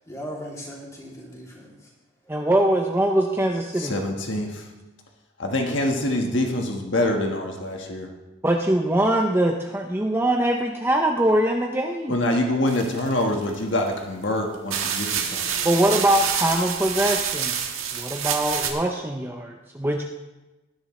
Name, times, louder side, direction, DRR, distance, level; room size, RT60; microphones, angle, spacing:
voice 1, 0.1-1.9 2.2-2.5, equal, 15° left, -4 dB, 2.8 m, -38 dB
voice 2, 2.3-4.1 8.4-12.2 15.6-17.5 17.9-20.0, right 1 dB, 10° right, 2 dB, 0.6 m, -22 dB
voice 3, 3.8-4.7 5.4-8.1 12.1-15.7, left 1 dB, 60° left, 2 dB, 1.5 m, -25 dB
sound 1, 12.7-13.6 14.2-14.3 14.7-18.7, right 8 dB, 75° right, 1.5 m, -27 dB
19.5 x 11.0 x 3.2 m, 1.1 s
head